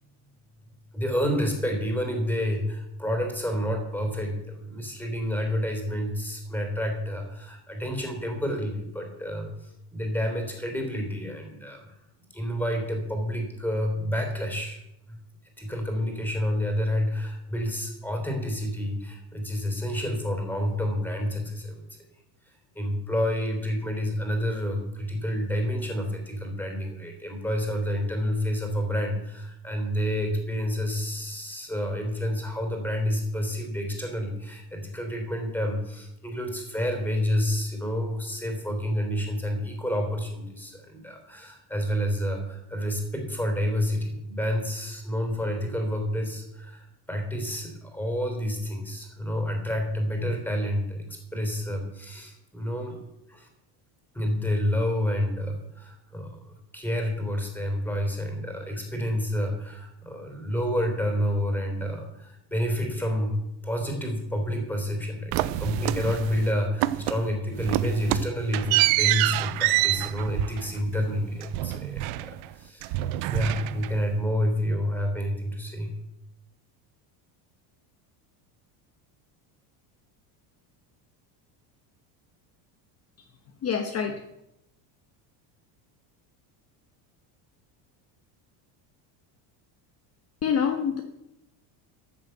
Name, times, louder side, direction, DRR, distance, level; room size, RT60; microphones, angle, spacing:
voice 1, 0.9-11.9 12.3-14.8 15.1-15.2 15.6-21.8 22.7-51.0 51.3-53.0 53.3-53.5 54.1-63.4 63.6-72.9 73.3-75.9, equal, 5° left, 3 dB, 3.5 m, -29 dB
sound 1, 65.3-66.5 66.8-67.3 67.6-72.5 72.8-74.1, right 16 dB, 75° right, 0.8 m, -27 dB
voice 2, 83.6-84.2 90.4-91.0, left 7 dB, 30° left, 4 dB, 1.2 m, -26 dB
13.5 x 7.6 x 7.9 m, 0.86 s
cardioid pair, 145°, 47 cm